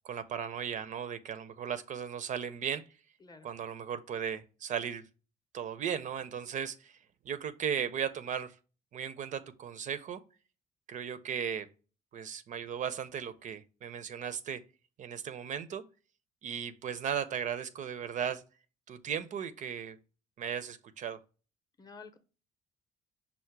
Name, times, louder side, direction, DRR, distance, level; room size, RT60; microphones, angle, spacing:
voice 1, 0.0-2.8 3.4-5.0 5.5-7.0 7.3-8.6 8.9-10.2 10.9-11.7 12.1-14.6 15.0-15.8 16.4-18.4 18.9-20.0 20.4-21.2, right 8 dB, 45° right, 0.4 m, -36 dB
voice 2, 21.8-22.2, left 4 dB, 25° left, 0.6 m, -50 dB
5.5 x 2.1 x 4.5 m
cardioid pair, 110°, 17 cm